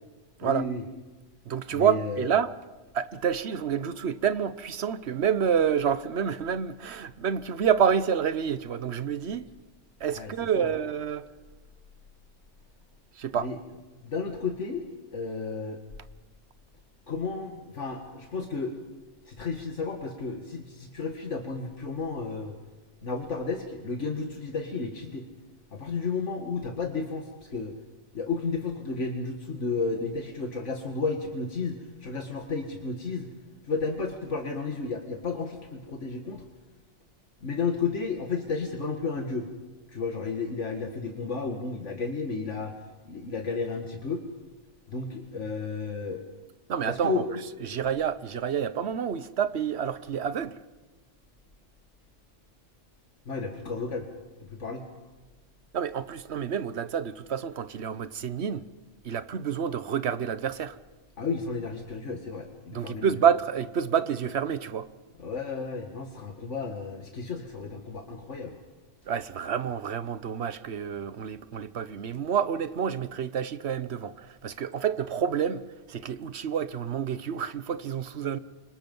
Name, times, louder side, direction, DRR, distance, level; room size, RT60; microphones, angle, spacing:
voice 1, 0.4-0.8 1.7-2.3 10.1-10.7 13.4-13.6 14.0-14.9 15.1-15.8 17.1-18.8 19.3-22.6 23.0-25.3 25.7-27.7 28.1-33.3 33.6-36.4 37.4-39.5 39.9-42.7 43.1-44.3 44.9-46.2 46.9-47.3 53.3-54.1 54.4-54.8 61.2-63.1 65.2-68.6, left 4 dB, 75° left, 2.2 m, -32 dB
voice 2, 1.5-2.5 2.9-9.5 10.0-11.3 13.2-13.5 46.7-47.2 47.6-50.6 55.7-58.7 59.0-60.8 62.7-64.9 69.1-75.6 75.9-78.4, right 8 dB, 65° right, 1.2 m, -28 dB
29.0 x 25.5 x 5.5 m
omnidirectional pair, 1.2 m